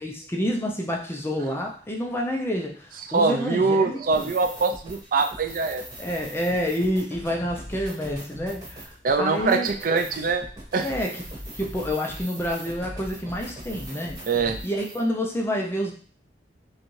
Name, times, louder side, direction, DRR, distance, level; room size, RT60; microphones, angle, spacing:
voice 1, 0.0-4.3 6.0-8.9 9.2-9.7 10.8-11.2 11.6-15.9, equal, 15° left, 0 dB, 0.5 m, -28 dB
voice 2, 3.1-5.8 9.0-10.4 10.7-10.9 14.3-14.6, right 4 dB, 50° right, 6 dB, 0.4 m, -23 dB
sound 1, 4.0-15.0, equal, 20° right, 1.2 m, -40 dB
6.3 x 2.3 x 3.1 m, 0.43 s
head